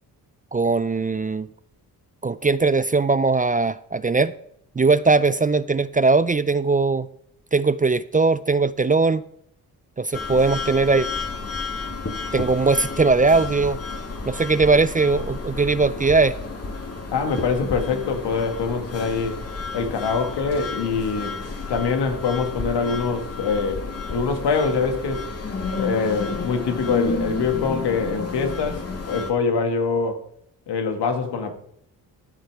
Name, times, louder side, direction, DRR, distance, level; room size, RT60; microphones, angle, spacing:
voice 1, 0.5-1.5 2.2-4.3 4.8-7.1 7.5-9.2 10.0-11.1 12.3-13.8 14.3-16.3, right 3 dB, 20° right, 0.5 m, -20 dB
sound 1, 10.1-29.3, left 3 dB, 35° left, 2.4 m, -31 dB
voice 2, 17.1-19.4 19.7-21.4 21.7-25.3 25.8-30.2 30.7-31.5, left 5 dB, 80° left, 1.9 m, -24 dB
14.0 x 6.5 x 4.7 m
cardioid pair, 60°, 40 cm